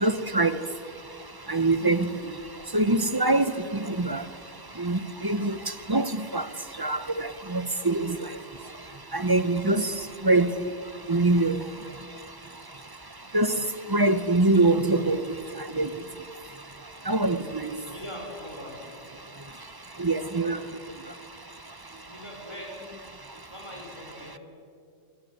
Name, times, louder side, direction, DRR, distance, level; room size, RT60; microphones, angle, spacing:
voice 1, 0.0-0.5 1.5-2.1 2.7-3.5 4.0-4.2 4.8-5.0 5.2-5.5 5.9-6.4 6.8-8.1 9.1-9.9 10.2-10.5 11.1-11.6 13.3-13.5 13.9-15.2 15.8-15.9 17.1-17.4 20.0-20.6, right 2 dB, 20° right, 0.8 m, -23 dB
voice 2, 17.8-18.8 22.1-22.8 23.5-24.4, equal, 20° left, 5.6 m, -41 dB
27.0 x 23.5 x 8.0 m
omnidirectional pair, 1.3 m